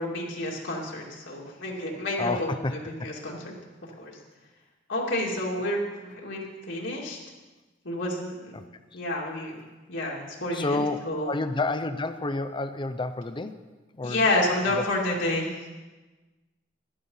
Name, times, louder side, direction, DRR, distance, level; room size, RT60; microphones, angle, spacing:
voice 1, 0.0-3.5 4.0-4.2 4.9-7.2 7.8-8.6 8.9-9.6 9.9-10.8 11.1-11.3 14.0-15.7, left 1 dB, 70° left, -3 dB, 2.5 m, -29 dB
voice 2, 2.2-2.7 3.0-3.2 8.5-8.7 8.9-9.0 10.5-13.6 13.9-14.2 14.7-14.8, left 2 dB, 25° left, 10 dB, 0.6 m, -30 dB
12.0 x 11.5 x 5.7 m, 1.2 s
head